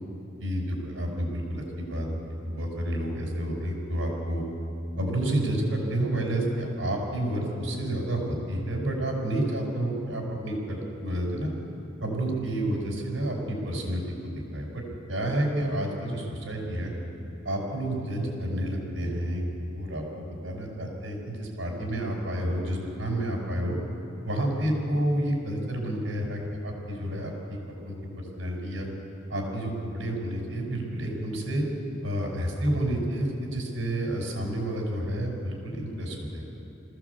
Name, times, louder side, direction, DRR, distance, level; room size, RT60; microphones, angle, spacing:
voice 1, 0.4-4.4 5.0-11.5 12.0-14.8 15.1-16.9 17.5-23.8 24.2-27.6 27.9-28.9 29.3-31.7 32.0-36.4, right 1 dB, 90° right, 1 dB, 5.5 m, -30 dB
21.5 x 15.5 x 8.3 m, 2.9 s
head